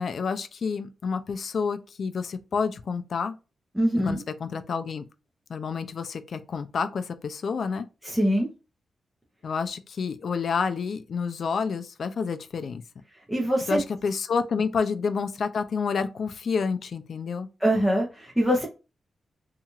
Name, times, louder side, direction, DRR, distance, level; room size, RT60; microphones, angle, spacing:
voice 1, 0.0-3.4 4.0-5.0 5.5-7.9 9.4-12.8 13.7-17.5, left 5 dB, 55° left, 0.3 m, -29 dB
voice 2, 3.7-4.2 8.0-8.5 13.3-13.8 17.6-18.7, equal, 5° right, 0.7 m, -23 dB
2.8 x 2.4 x 2.8 m
wide cardioid pair, 115°, 0 cm